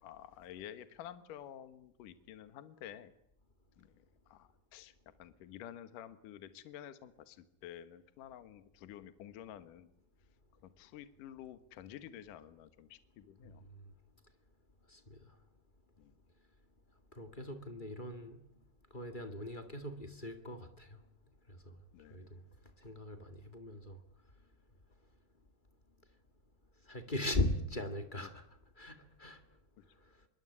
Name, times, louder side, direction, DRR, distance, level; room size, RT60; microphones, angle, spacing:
voice 1, 0.0-3.1 3.8-3.9 4.3-4.9 5.2-9.9 10.6-13.6 16.0-16.1 21.9-22.3 29.8-29.9, left 11 dB, 65° left, 2.7 m, -50 dB
voice 2, 14.9-15.3 17.1-18.4 18.9-21.0 21.5-21.7 22.1-22.4 22.8-24.0 26.9-28.4 28.8-29.4, left 1 dB, 25° left, 1.0 m, -39 dB
26.5 x 23.0 x 9.8 m
omnidirectional pair, 4.5 m